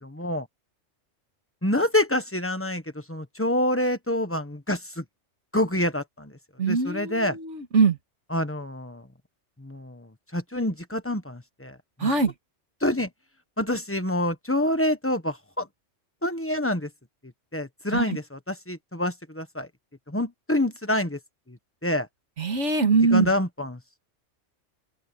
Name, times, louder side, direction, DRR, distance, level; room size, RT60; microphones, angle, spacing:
voice 1, 0.0-0.5 1.6-5.0 5.5-6.4 6.7-7.4 8.3-9.1 9.6-12.1 12.8-13.1 13.6-15.7 16.2-16.9 17.5-19.7 20.1-21.2 21.5-22.1 23.1-23.8, left 1 dB, 10° left, 1.3 m, -27 dB
voice 2, 6.6-8.0 12.0-12.3 17.9-18.2 22.4-23.3, right 4 dB, 70° right, 2.2 m, -22 dB
open air
omnidirectional pair, 1.3 m